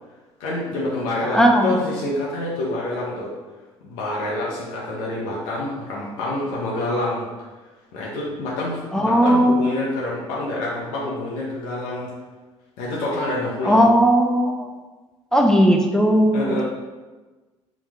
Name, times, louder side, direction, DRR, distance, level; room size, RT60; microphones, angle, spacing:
voice 1, 0.4-3.3 3.8-7.3 7.9-12.1 12.8-13.8 16.3-16.6, left 2 dB, 60° left, -5 dB, 0.8 m, -27 dB
voice 2, 1.2-1.7 8.9-9.7 13.6-14.7 15.3-16.6, equal, 5° left, 1 dB, 0.5 m, -17 dB
4.3 x 2.4 x 3.4 m, 1.2 s
figure-of-eight pair, 55°, 16 cm